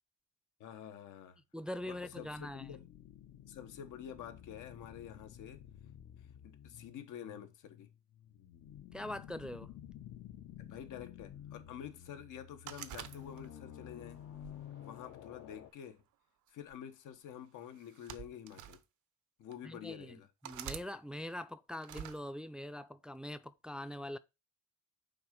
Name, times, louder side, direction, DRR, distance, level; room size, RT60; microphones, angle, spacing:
voice 1, 0.6-1.4 1.9-2.9 3.5-5.6 6.4-7.9 10.6-14.2 14.8-16.0 16.5-18.8 19.4-20.3, left 9 dB, 85° left, 1.2 m, -48 dB
voice 2, 1.5-2.7 8.9-9.7 19.6-24.2, left 1 dB, 5° right, 0.4 m, -43 dB
sound 1, 1.7-15.7, left 10 dB, 65° left, 0.8 m, -52 dB
sound 2, 12.7-13.7 14.3-15.5 16.5-16.7 17.8-18.8 19.5-19.6 20.4-20.9 21.8-22.2, right 11 dB, 80° right, 0.8 m, -47 dB
5.9 x 3.8 x 5.2 m
cardioid pair, 90°, 30 cm